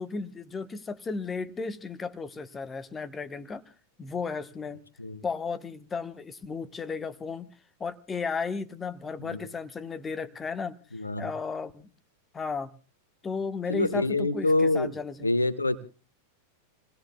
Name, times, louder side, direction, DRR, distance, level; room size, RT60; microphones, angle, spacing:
voice 1, 0.0-3.6 4.0-4.8 5.2-7.5 7.8-10.8 11.2-11.9 12.3-12.7 13.2-15.3, left 5 dB, 15° left, 1.2 m, -34 dB
voice 2, 10.9-11.3 13.7-14.9 15.2-15.8, left 2 dB, 80° left, 1.3 m, -26 dB
28.5 x 18.5 x 2.3 m
figure-of-eight pair, 90°, 0 cm